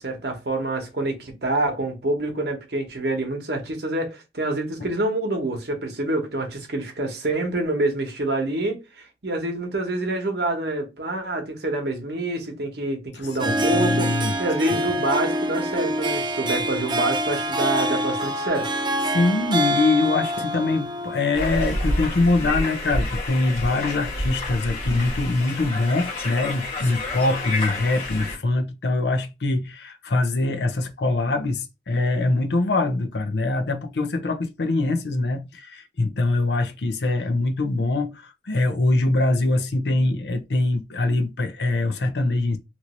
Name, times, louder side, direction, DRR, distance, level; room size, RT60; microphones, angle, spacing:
voice 1, 0.0-14.1 14.4-18.7, right 2 dB, 65° right, 1.0 m, -27 dB
Harp, 13.2-22.0, right 1 dB, 25° right, 0.4 m, -26 dB
voice 2, 13.4-14.3 19.1-42.6, left 2 dB, 70° left, 0.6 m, -23 dB
sound 1, 21.3-28.4, left 1 dB, 35° left, 1.3 m, -29 dB
3.0 x 2.6 x 3.0 m
head